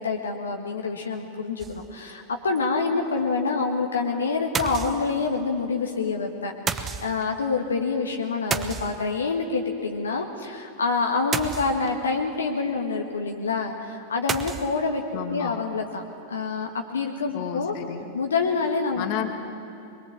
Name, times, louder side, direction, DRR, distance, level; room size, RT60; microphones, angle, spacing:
voice 1, 0.0-16.0 16.3-17.8 18.1-19.0, left 4 dB, 70° left, 2 dB, 1.6 m, -27 dB
sound 1, 1.6-2.1 2.6-2.7 2.9-3.0 4.5-5.4 6.7-7.3 8.5-9.4 11.3-12.1 14.3-14.8, right 6 dB, 20° right, 1.1 m, -31 dB
voice 2, 15.1-15.6 17.3-18.1 19.0-19.3, left 10 dB, 45° left, 6 dB, 2.0 m, -32 dB
23.0 x 22.5 x 7.4 m, 2.7 s
figure-of-eight pair, 90°, 0 cm